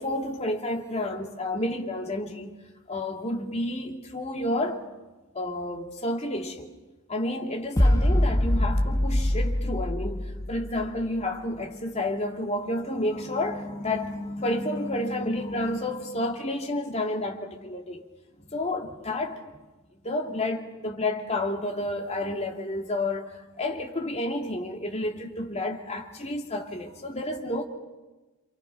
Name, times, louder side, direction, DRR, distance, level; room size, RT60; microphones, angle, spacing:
voice 1, 0.0-2.5 2.9-4.8 5.3-6.7 7.1-18.0 18.5-19.4 20.0-27.6, left 1 dB, 35° left, 2.7 m, -30 dB
sound 1, 7.8-11.2, left 1 dB, 15° left, 1.1 m, -24 dB
28.0 x 27.0 x 5.8 m
head